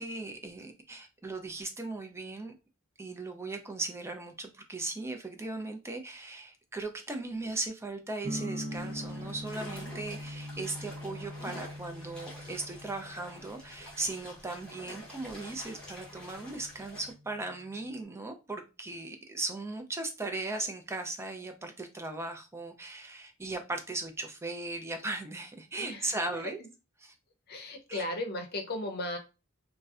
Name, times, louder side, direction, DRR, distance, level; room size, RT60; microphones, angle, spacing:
voice 1, 0.0-2.5 3.0-26.6 27.0-27.1 27.9-28.0, right 2 dB, 15° right, 0.4 m, -38 dB
sound 1, 8.2-18.0, equal, 45° right, 0.7 m, -43 dB
sound 2, 8.7-17.1, equal, 5° left, 0.8 m, -48 dB
voice 2, 25.8-26.1 27.5-29.2, left 1 dB, 50° left, 0.6 m, -36 dB
2.6 x 2.0 x 2.3 m
head